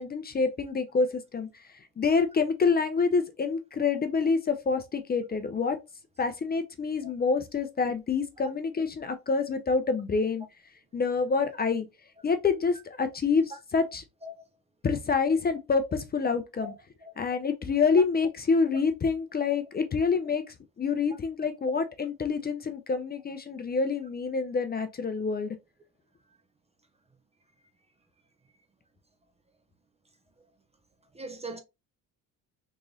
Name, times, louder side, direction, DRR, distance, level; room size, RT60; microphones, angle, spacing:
voice 1, 0.0-1.7 2.0-5.8 6.2-10.4 10.9-11.9 12.2-14.0 14.8-16.7 17.2-25.6, left 4 dB, 25° left, 0.5 m, -27 dB
voice 2, 31.1-31.6, right 1 dB, 20° right, 0.5 m, -40 dB
3.6 x 3.0 x 2.5 m
cardioid pair, 90°, 35 cm